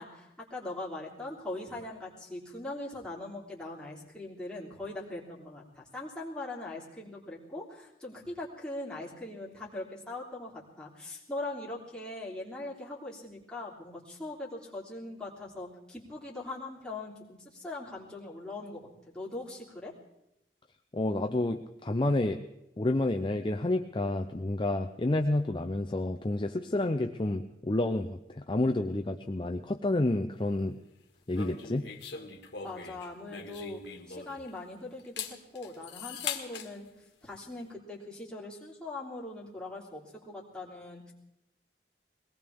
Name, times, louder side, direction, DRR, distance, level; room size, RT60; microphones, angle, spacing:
voice 1, 0.0-19.9 32.6-33.8 34.1-36.9 37.2-41.1, left 2 dB, 5° left, -6 dB, 3.2 m, -41 dB
voice 2, 20.9-22.4 22.8-30.8 31.3-31.8, left 2 dB, 25° left, 6 dB, 0.5 m, -29 dB
sound 1, 31.3-34.6 35.0-36.7, left 7 dB, 75° left, 1.7 m, -41 dB
22.5 x 18.5 x 3.6 m, 0.86 s
head